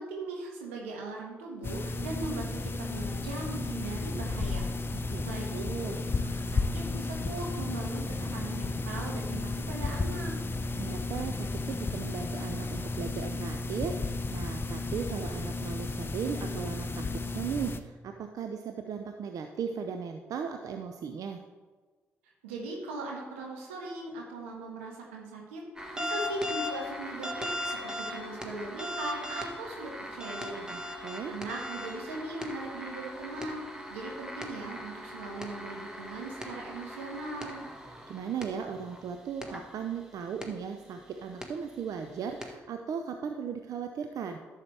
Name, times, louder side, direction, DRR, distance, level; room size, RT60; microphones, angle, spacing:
voice 1, 0.0-4.7 5.2-5.9 6.4-10.3 22.4-25.6 25.9-30.7 31.3-33.6 33.9-37.6, right 3 dB, 85° right, 0 dB, 1.4 m, -39 dB
sound 1, 1.6-17.8, left 3 dB, 35° left, 0.7 m, -33 dB
voice 2, 4.9-5.2 5.5-6.0 10.8-21.4 30.7-31.3 38.1-44.4, right 7 dB, 60° right, 6 dB, 0.6 m, -37 dB
sound 2, 25.8-39.0 39.4-39.6 40.4-40.5 41.3-41.5 42.4-42.5, left 1 dB, 10° right, 1.6 m, -39 dB
11.5 x 7.4 x 3.4 m, 1.4 s
hypercardioid pair, 45°, 7 cm